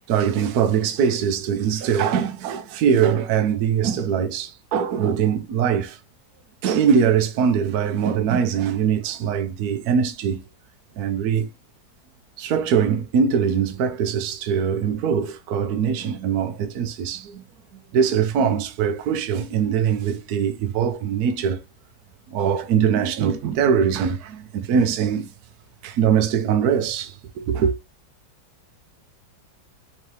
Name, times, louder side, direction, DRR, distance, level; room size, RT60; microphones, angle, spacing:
voice 1, 0.1-6.0 6.6-10.4 11.0-11.5 12.4-17.4 17.7-21.6 22.3-25.3 25.8-27.7, right 7 dB, 65° right, 1.0 m, -22 dB
4.6 x 2.8 x 3.2 m
omnidirectional pair, 2.0 m